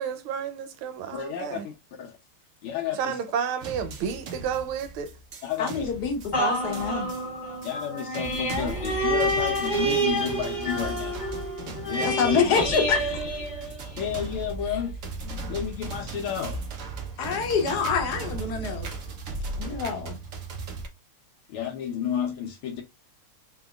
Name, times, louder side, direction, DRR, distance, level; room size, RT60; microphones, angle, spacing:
voice 1, 0.0-1.7 2.9-5.1, right 7 dB, 80° right, 1.6 m, -31 dB
voice 2, 1.1-1.7 2.0-2.2 2.6-3.2 5.4-5.9 7.6-11.2 11.9-12.3 14.0-15.0 15.5-16.6 19.8-19.9 21.5-22.8, left 9 dB, 80° left, 1.6 m, -31 dB
sound 1, 3.6-20.9, right 3 dB, 60° right, 0.9 m, -37 dB
voice 3, 5.6-7.1 12.0-13.1 17.2-18.9 19.6-20.1, left 6 dB, 60° left, 1.2 m, -26 dB
sound 2, 6.3-14.2 14.7-14.8, right 1 dB, 30° left, 0.8 m, -28 dB
3.9 x 3.7 x 2.4 m
omnidirectional pair, 2.4 m